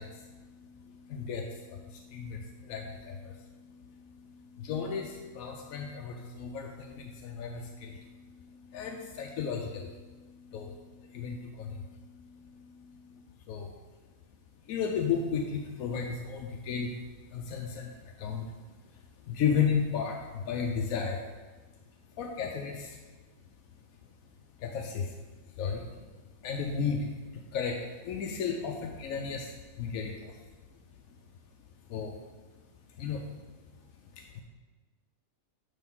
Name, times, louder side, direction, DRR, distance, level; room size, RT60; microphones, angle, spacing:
voice 1, 0.0-13.7 14.7-17.0 17.3-18.5 19.3-21.2 22.2-23.0 24.6-25.2 25.6-26.0 26.4-30.4 31.9-32.2 33.0-33.3 34.2-34.4, left 6 dB, 85° left, 2 dB, 1.0 m, -35 dB
10.0 x 3.5 x 3.7 m, 1.3 s
omnidirectional pair, 1.5 m